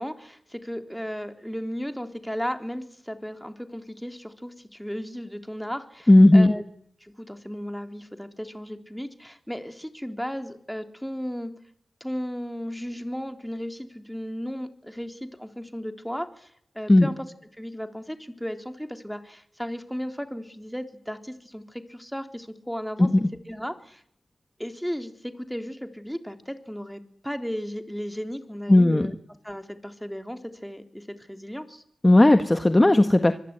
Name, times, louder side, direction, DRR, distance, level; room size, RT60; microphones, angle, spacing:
voice 1, 0.0-6.6 7.0-11.5 12.0-16.5 16.8-17.2 17.5-23.1 23.5-24.0 24.6-29.1 29.4-31.8, equal, ahead, 7 dB, 3.6 m, -35 dB
voice 2, 6.1-6.5 16.9-17.1 23.0-23.3 28.7-29.1 32.0-33.3, left 1 dB, 20° left, 9 dB, 1.5 m, -16 dB
25.0 x 21.0 x 9.4 m, 0.66 s
cardioid pair, 55°, 0 cm